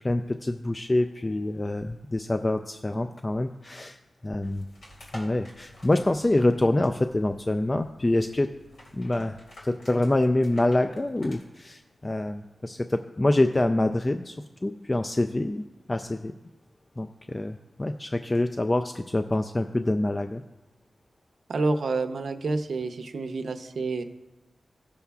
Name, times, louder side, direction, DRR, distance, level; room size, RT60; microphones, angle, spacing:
voice 1, 0.0-4.0 4.2-4.7 5.1-8.5 8.9-9.3 9.6-16.3 17.0-20.4, left 1 dB, 20° left, 7 dB, 0.3 m, -26 dB
sound 1, 4.4-11.4, left 1 dB, 85° left, 2.5 m, -50 dB
voice 2, 21.5-24.0, right 3 dB, 70° right, 6 dB, 0.6 m, -28 dB
17.0 x 6.8 x 2.3 m, 1.0 s
wide cardioid pair, 120°, 0 cm